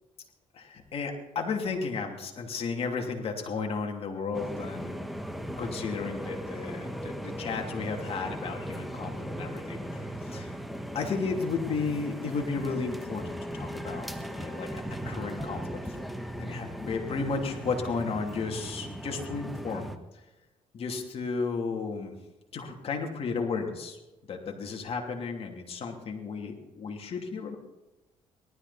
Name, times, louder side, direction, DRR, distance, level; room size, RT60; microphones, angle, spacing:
voice 1, 0.5-5.1 5.6-10.5 10.9-16.0 16.4-19.9 20.7-22.1 22.5-24.0 24.3-27.6, left 4 dB, 55° left, 2 dB, 2.9 m, -34 dB
sound 1, 4.3-20.0, equal, ahead, 1.4 m, -38 dB
19.0 x 13.0 x 4.2 m, 1.0 s
cardioid pair, 80°, 12 cm